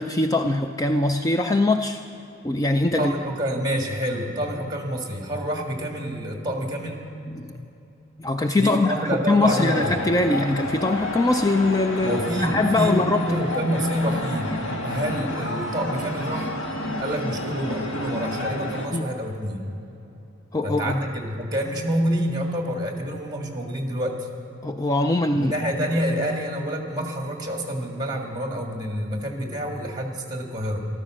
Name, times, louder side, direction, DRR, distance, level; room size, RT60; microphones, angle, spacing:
voice 1, 0.0-2.0 2.4-3.1 7.4-7.6 8.2-13.3 18.9-19.1 20.5-20.9 24.6-25.5, left 2 dB, 20° left, 6 dB, 0.4 m, -22 dB
voice 2, 2.9-7.0 8.5-10.0 12.0-14.5 14.8-16.5 17.0-19.6 20.6-24.2 25.3-30.9, equal, 20° right, 2 dB, 1.9 m, -27 dB
sound 1, 9.4-18.9, left 1 dB, 75° left, 1.7 m, -30 dB
14.0 x 13.5 x 6.3 m, 2.8 s
head